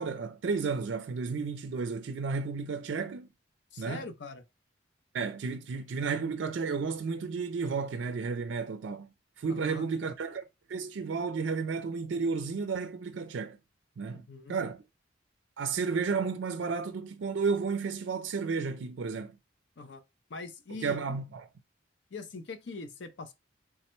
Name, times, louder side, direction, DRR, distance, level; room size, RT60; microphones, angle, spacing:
voice 1, 0.0-3.3 3.8-4.0 5.1-9.1 9.4-10.4 10.7-13.6 14.0-14.8 15.6-19.4 20.8-21.5, right 5 dB, 70° right, 0.4 m, -32 dB
voice 2, 3.7-4.4 9.5-9.9 14.1-14.6 19.8-20.0 20.3-21.2 22.1-23.3, left 3 dB, 65° left, 0.5 m, -42 dB
3.4 x 2.1 x 4.3 m
head